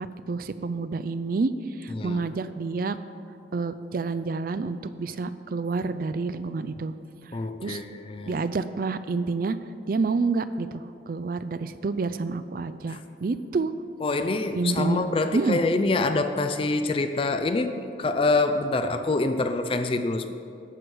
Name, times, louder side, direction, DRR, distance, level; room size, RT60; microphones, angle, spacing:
voice 1, 0.0-1.5 1.8-3.0 3.5-6.9 7.6-7.8 8.3-9.6 9.9-13.7 14.6-15.0 15.3-15.6, right 4 dB, 50° right, 13 dB, 0.4 m, -28 dB
voice 2, 1.9-2.2 7.3-8.4 14.0-20.3, left 3 dB, 30° left, 9 dB, 0.4 m, -26 dB
11.5 x 7.7 x 4.7 m, 2.6 s
head